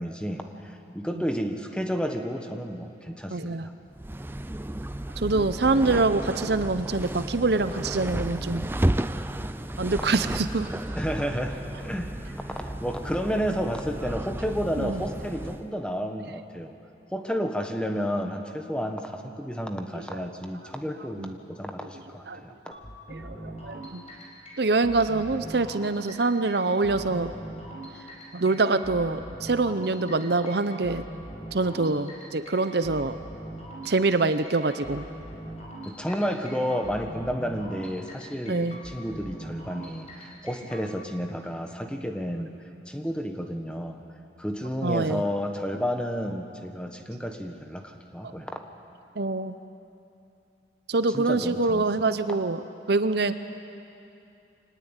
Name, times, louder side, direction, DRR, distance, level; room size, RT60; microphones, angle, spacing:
voice 1, 0.0-3.7 10.9-16.7 17.1-22.5 35.8-42.5 42.9-44.0 44.4-48.6 51.1-51.9, equal, 5° left, 4 dB, 1.3 m, -31 dB
voice 2, 3.3-3.7 5.2-8.7 9.8-10.7 14.8-15.0 20.1-20.2 21.2-21.3 22.3-22.4 23.1-24.0 24.6-27.3 28.3-31.0 31.5-33.2 33.8-35.1 38.5-38.8 44.8-45.2 48.2-48.3 49.2-49.5 50.9-52.6 52.9-53.3, right 3 dB, 60° right, 11 dB, 0.7 m, -25 dB
sound 1, 3.9-15.7, right 1 dB, 10° right, 0.5 m, -33 dB
sound 2, 22.7-40.8, right 1 dB, 35° left, 4.9 m, -41 dB
24.5 x 19.5 x 9.0 m, 2.7 s
head